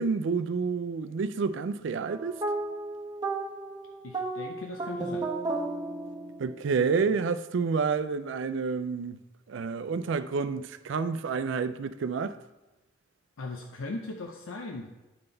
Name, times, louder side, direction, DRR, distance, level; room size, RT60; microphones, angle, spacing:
voice 1, 0.0-2.4 6.4-9.2 9.5-12.4, right 5 dB, 70° right, 0.4 m, -29 dB
sound 1, 2.1-6.7, right 2 dB, 20° right, 0.8 m, -34 dB
voice 2, 4.0-5.3 13.4-14.9, left 3 dB, 90° left, 0.6 m, -38 dB
11.0 x 3.9 x 3.9 m
head